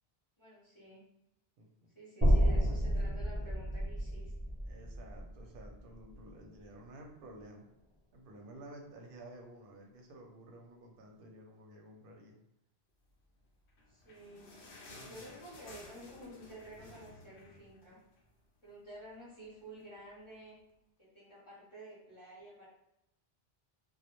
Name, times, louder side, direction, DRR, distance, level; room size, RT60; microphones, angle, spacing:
voice 1, 0.4-1.1 1.9-4.6 13.9-14.5 15.0-18.0 18.6-20.6 21.0-22.7, equal, 35° left, -9 dB, 0.7 m, -51 dB
voice 2, 1.6-1.9 4.6-7.6 8.1-12.4 14.9-15.4, right 1 dB, 65° right, 1 dB, 0.7 m, -53 dB
sound 1, 2.2-6.4, equal, 20° right, 0.4 m, -31 dB
sound 2, 13.6-18.4 18.7-18.8 19.1-19.3 20.0-20.1, left 2 dB, 85° left, 0.9 m, -54 dB
2.2 x 2.0 x 2.9 m, 0.83 s
omnidirectional pair, 1.1 m